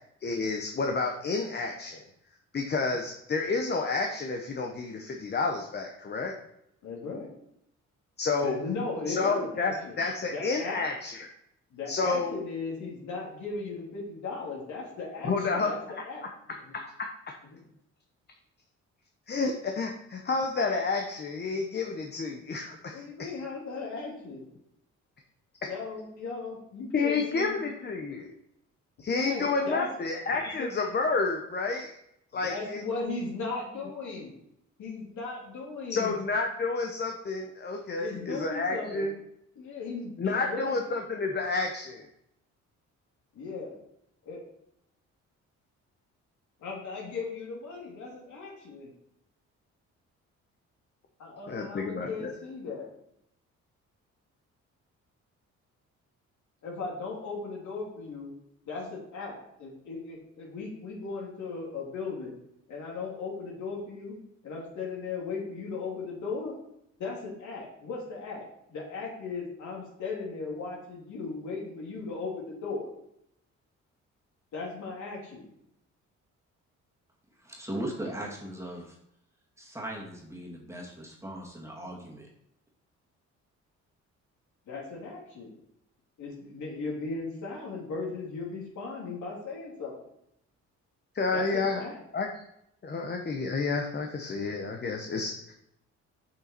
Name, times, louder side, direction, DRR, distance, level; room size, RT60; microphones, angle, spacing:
voice 1, 0.2-2.0 2.5-6.3 8.2-8.6 9.1-11.1 11.9-12.4 15.2-15.7 19.3-23.3 26.9-28.3 29.0-32.0 32.3-32.8 35.9-39.2 40.2-42.1 51.5-52.3 91.1-91.8 92.1-92.4 92.8-95.5, left 4 dB, 35° left, 3 dB, 0.9 m, -30 dB
voice 2, 6.8-7.3 8.4-10.0 10.3-10.8 11.7-16.3 17.5-17.6 22.9-24.5 25.6-27.6 29.1-29.9 30.3-30.7 32.3-34.3 34.8-36.1 38.0-39.1 39.5-40.8 43.3-43.8 44.3-44.4 46.6-48.9 51.2-52.9 56.6-58.3 58.6-62.3 62.7-64.2 64.4-66.6 67.0-72.9 74.5-75.5 84.7-85.5 86.2-89.9 91.3-92.0, left 4 dB, 70° left, -3 dB, 3.0 m, -37 dB
voice 3, 77.4-78.9 79.6-82.3, right 1 dB, 10° right, -3 dB, 2.1 m, -38 dB
6.8 x 5.7 x 4.4 m, 0.77 s
cardioid pair, 90°, 30 cm